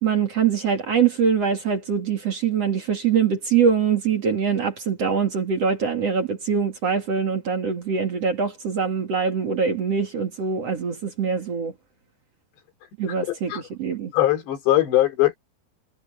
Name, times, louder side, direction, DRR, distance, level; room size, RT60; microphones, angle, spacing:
voice 1, 0.0-11.7 13.0-14.1, right 6 dB, 45° right, 2.6 m, -23 dB
voice 2, 14.1-15.4, left 14 dB, 90° left, 5.8 m, -20 dB
omnidirectional pair, 4.8 m